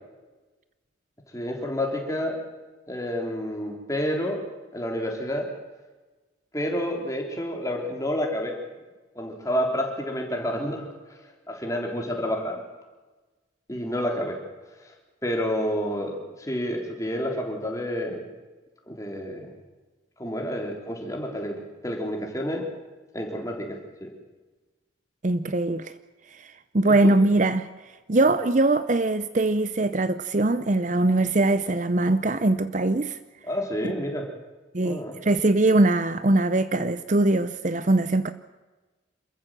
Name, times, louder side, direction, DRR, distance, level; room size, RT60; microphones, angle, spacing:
voice 1, 1.3-2.4 2.9-4.5 4.7-5.5 6.5-8.5 9.2-11.2 11.5-12.6 13.7-14.4 14.8-14.9 15.2-18.2 18.9-19.5 20.2-22.7 23.1-24.1 27.0-27.1 33.5-34.3 34.8-35.2, equal, 15° left, 3.6 m, -29 dB
voice 2, 25.2-25.9 26.3-26.5 26.7-27.7 28.1-33.2 34.7-38.3, right 2 dB, 40° right, 0.7 m, -22 dB
27.0 x 14.5 x 7.5 m
head